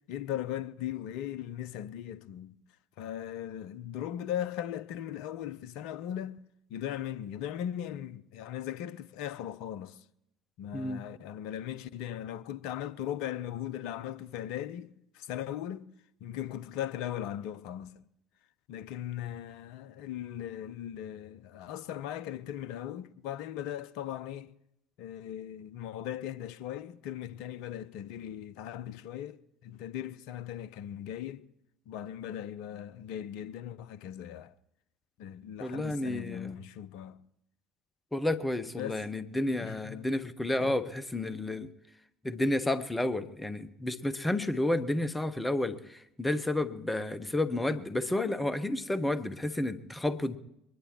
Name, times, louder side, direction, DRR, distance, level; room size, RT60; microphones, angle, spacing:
voice 1, 0.1-2.5 3.0-6.4 6.7-10.0 10.6-15.9 16.2-17.9 18.7-24.5 25.0-29.4 29.6-31.4 31.9-34.5 35.2-37.2 38.8-39.0 39.6-40.0 40.6-40.7, left 11 dB, 55° left, 0.6 m, -38 dB
voice 2, 35.6-36.6 38.1-41.7 42.2-50.4, left 1 dB, 10° left, 0.9 m, -31 dB
22.5 x 20.5 x 3.1 m
figure-of-eight pair, 60°, 0 cm